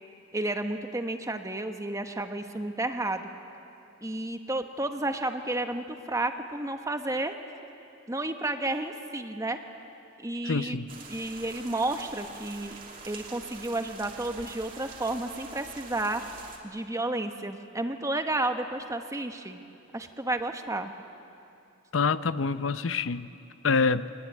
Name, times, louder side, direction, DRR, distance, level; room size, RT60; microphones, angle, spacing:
voice 1, 0.3-3.3 4.0-7.3 8.1-9.6 10.2-10.8 11.1-12.8 13.1-16.2 16.6-19.6 19.9-20.9, right 2 dB, 15° right, 6 dB, 1.2 m, -31 dB
voice 2, 10.4-10.9 21.9-23.3 23.6-24.1, left 4 dB, 80° left, 13 dB, 0.7 m, -26 dB
sound 1, 10.9-16.6, right 4 dB, 45° right, 2.9 m, -45 dB
24.5 x 19.5 x 9.5 m, 2.7 s
head